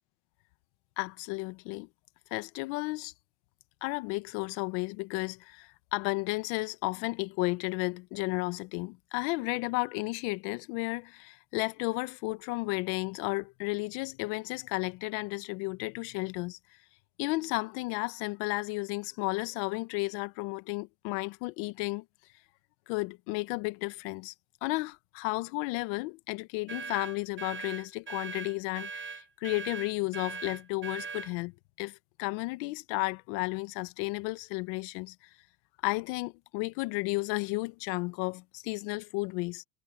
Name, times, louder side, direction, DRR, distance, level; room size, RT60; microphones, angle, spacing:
voice 1, 1.0-1.9 2.3-3.1 3.8-16.6 17.2-22.0 22.9-24.3 24.6-35.3 35.8-39.6, left 24 dB, 80° left, 1.5 m, -33 dB
sound 1, 26.7-31.3, right 5 dB, 25° right, 1.0 m, -40 dB
supercardioid pair, 100°, 48 cm